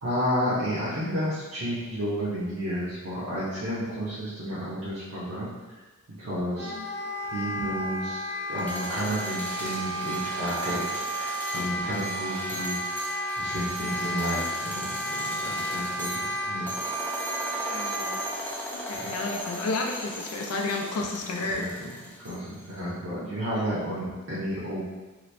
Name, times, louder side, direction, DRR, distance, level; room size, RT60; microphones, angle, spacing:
voice 1, 0.0-5.5 6.2-6.7 7.3-12.8 13.4-16.7 18.9-19.1 21.5-21.9 22.2-24.8, equal, 60° right, -10 dB, 0.7 m, -31 dB
Wind instrument woodwind instrument, 6.6-18.3, right 1 dB, 45° left, 0.8 m, -33 dB
sound 1, 8.5-22.6, left 1 dB, 10° left, 0.3 m, -37 dB
voice 2, 17.7-18.2 18.8-21.7 23.5-23.8, left 3 dB, 80° left, 1 dB, 0.5 m, -32 dB
2.9 x 2.5 x 3.2 m, 1.3 s
head